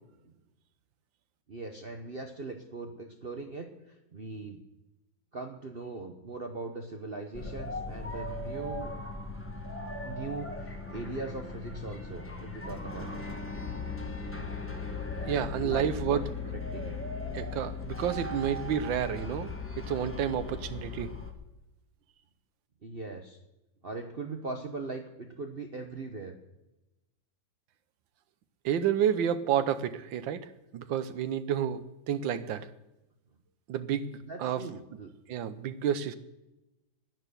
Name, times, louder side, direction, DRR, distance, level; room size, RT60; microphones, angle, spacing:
voice 1, 1.5-4.6 5.3-8.9 10.0-13.4 15.2-16.2 16.5-17.0 22.8-23.4 23.8-26.4 34.3-35.2, right 3 dB, 40° right, 4 dB, 0.9 m, -40 dB
sound 1, 7.3-21.3, left 3 dB, 10° left, 1.2 m, -38 dB
voice 2, 15.2-16.2 17.3-19.5 19.8-21.1 28.6-30.5 30.7-31.8 32.1-32.7 33.7-34.6 35.3-36.1, right 9 dB, 85° right, 12 dB, 1.6 m, -30 dB
11.0 x 10.5 x 6.8 m, 0.95 s
omnidirectional pair, 2.0 m